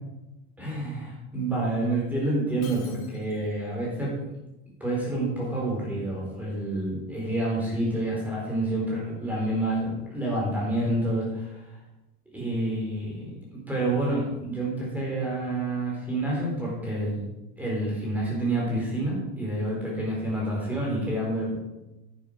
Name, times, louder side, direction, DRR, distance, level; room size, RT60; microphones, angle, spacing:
voice 1, 0.6-4.2 4.8-11.8 12.3-17.3 17.6-21.6, right 1 dB, 5° right, -4 dB, 4.1 m, -28 dB
Shatter, 2.6-3.6, left 6 dB, 40° left, 5.0 m, -49 dB
10.5 x 10.0 x 5.2 m, 0.96 s
cardioid pair, 175°, 38 cm